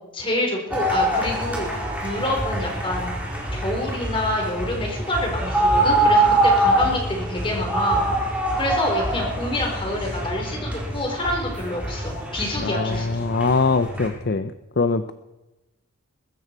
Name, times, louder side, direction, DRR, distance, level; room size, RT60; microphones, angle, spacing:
voice 1, 0.1-3.1 3.5-8.1 8.6-13.2, left 1 dB, 25° left, 0 dB, 4.3 m, -27 dB
sound 1, 0.7-14.1, right 1 dB, 5° right, 4.0 m, -24 dB
voice 2, 12.6-14.5 14.8-15.1, left 4 dB, 45° left, 11 dB, 0.5 m, -22 dB
21.5 x 13.5 x 4.6 m, 1.0 s
head